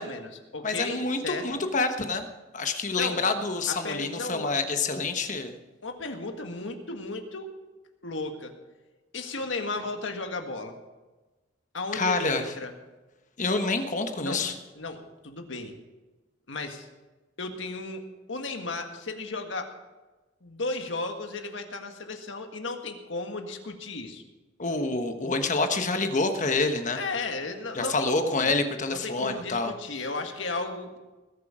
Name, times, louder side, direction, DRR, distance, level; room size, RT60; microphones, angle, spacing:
voice 1, 0.0-1.6 3.0-3.3 3.7-4.5 5.8-7.5 8.0-8.5 9.1-10.7 11.7-12.7 14.2-14.4 14.8-15.8 16.5-16.9 17.4-18.0 18.3-19.7 20.4-24.2 26.9-28.5 28.9-31.0, left 3 dB, 75° left, 5 dB, 1.7 m, -34 dB
voice 2, 0.6-2.2 2.5-5.5 11.9-12.4 13.4-14.5 24.6-27.0 27.7-29.7, left 3 dB, 40° left, 7 dB, 1.2 m, -27 dB
20.5 x 8.4 x 5.0 m, 1.2 s
head